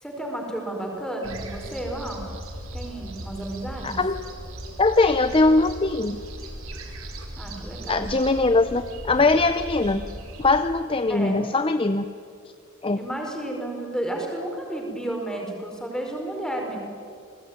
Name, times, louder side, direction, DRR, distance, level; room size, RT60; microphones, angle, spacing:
voice 1, 0.0-2.3 2.7-4.0 7.4-8.1 11.1-11.4 13.0-16.8, right 1 dB, 5° left, 1 dB, 5.0 m, -32 dB
sound 1, 1.2-10.6, right 1 dB, 90° right, 4.1 m, -38 dB
voice 2, 3.8-4.2 4.8-6.2 7.9-10.1 10.4-12.1 12.8-13.0, left 3 dB, 25° left, 10 dB, 0.7 m, -21 dB
29.5 x 20.0 x 9.5 m, 2.4 s
head